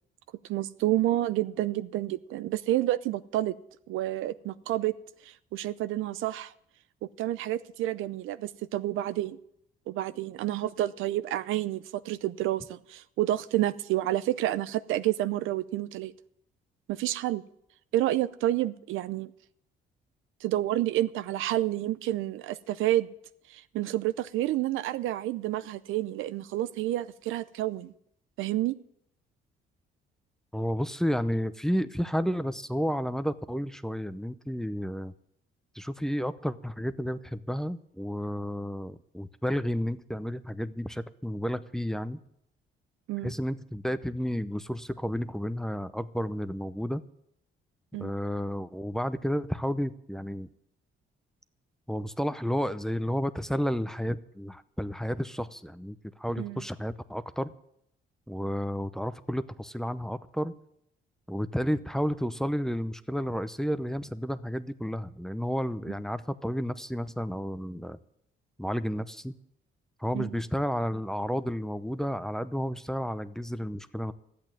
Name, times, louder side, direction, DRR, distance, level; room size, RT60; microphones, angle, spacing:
voice 1, 0.5-3.5 3.9-4.9 5.3-6.5 7.2-9.4 9.9-16.1 16.9-17.4 17.9-19.3 20.4-23.1 23.5-27.9 28.4-28.7 43.1-43.3 47.9-48.1 56.4-56.6 70.1-70.3, right 14 dB, 90° right, 14 dB, 0.6 m, -29 dB
voice 2, 30.5-35.1 35.7-42.2 43.2-47.0 48.0-50.5 51.9-57.5 58.3-60.5 61.3-68.0 68.6-69.3 70.0-74.1, equal, ahead, 12 dB, 0.7 m, -31 dB
13.0 x 8.6 x 9.1 m, 0.74 s
cardioid pair, 90°, 20 cm